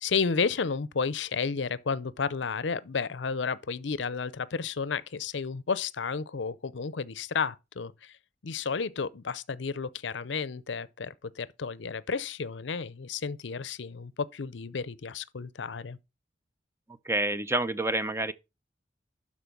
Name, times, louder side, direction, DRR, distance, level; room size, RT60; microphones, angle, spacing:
voice 1, 0.0-8.2 8.4-16.0, left 5 dB, 70° left, 0.6 m, -32 dB
voice 2, 17.1-18.3, right 2 dB, 15° right, 0.6 m, -28 dB
12.0 x 4.2 x 6.0 m
head